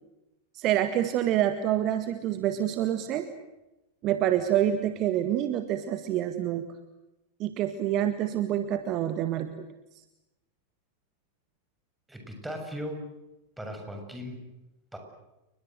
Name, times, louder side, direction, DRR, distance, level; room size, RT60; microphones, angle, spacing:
voice 1, 0.5-3.3 4.0-6.7 7.4-9.7, right 11 dB, 35° right, 10 dB, 1.8 m, -27 dB
voice 2, 12.1-13.0 13.6-14.4 14.9-15.0, equal, 5° right, 3 dB, 7.4 m, -37 dB
30.0 x 22.5 x 8.0 m, 0.97 s
figure-of-eight pair, 90°, 0 cm